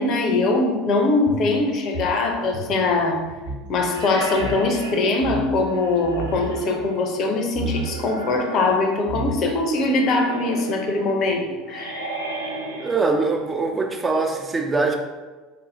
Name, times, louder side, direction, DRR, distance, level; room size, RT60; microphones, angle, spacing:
voice 1, 0.0-3.2 3.7-12.1, left 2 dB, 45° left, 4 dB, 0.6 m, -22 dB
sound 1, 1.2-3.7 4.0-4.1 4.3-4.6 5.2-5.7 6.0-6.6 7.5-7.9 8.7-8.8 9.1-9.7, right 2 dB, 70° right, 1.2 m, -31 dB
sound 2, 3.9-13.7, right 1 dB, 85° right, 0.4 m, -35 dB
voice 2, 12.8-14.9, right 3 dB, 20° right, 3 dB, 0.5 m, -22 dB
4.0 x 2.7 x 3.8 m, 1.3 s
figure-of-eight pair, 70°, 0 cm